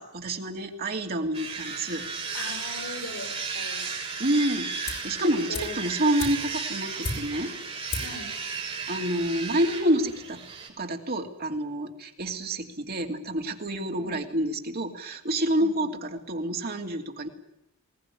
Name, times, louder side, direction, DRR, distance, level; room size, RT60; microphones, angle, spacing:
voice 1, 0.0-2.1 4.2-7.5 8.7-10.4 10.8-17.3, right 1 dB, 45° right, 3 dB, 2.9 m, -28 dB
sound 1, 1.3-10.7, right 5 dB, 30° right, 5.9 m, -35 dB
voice 2, 2.3-3.9 5.3-5.7 7.9-8.3 14.0-14.2 15.6-15.9, left 3 dB, 75° left, 8 dB, 5.4 m, -40 dB
sound 2, 4.8-5.2 5.5-7.5 7.9-8.3 8.5-8.6, left 3 dB, 50° left, 5.9 m, -35 dB
21.0 x 18.5 x 9.9 m, 0.85 s
head